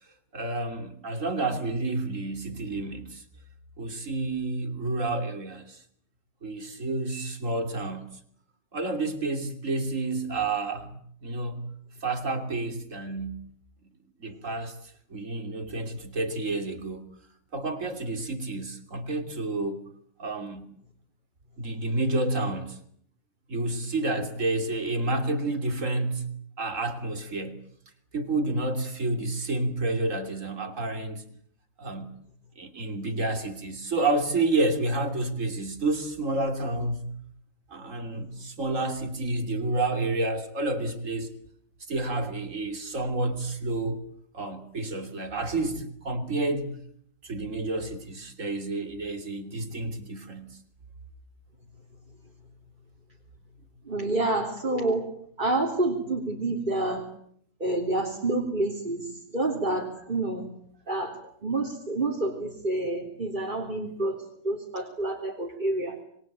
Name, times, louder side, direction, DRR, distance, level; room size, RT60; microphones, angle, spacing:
voice 1, 0.3-3.2 3.8-5.8 6.4-8.0 8.7-11.6 12.0-13.5 14.2-17.0 17.5-19.8 20.2-20.6 21.6-22.8 23.5-26.3 26.6-27.6 28.1-31.2 31.8-32.1 32.6-37.1 37.7-41.3 41.9-44.0 44.3-46.7 47.2-50.5, right 2 dB, 50° right, 3.2 m, -30 dB
voice 2, 53.9-55.1 55.4-57.0 57.6-59.1 59.3-60.4 60.9-66.0, right 2 dB, 30° right, 3.5 m, -28 dB
27.0 x 22.0 x 9.1 m
omnidirectional pair, 1.7 m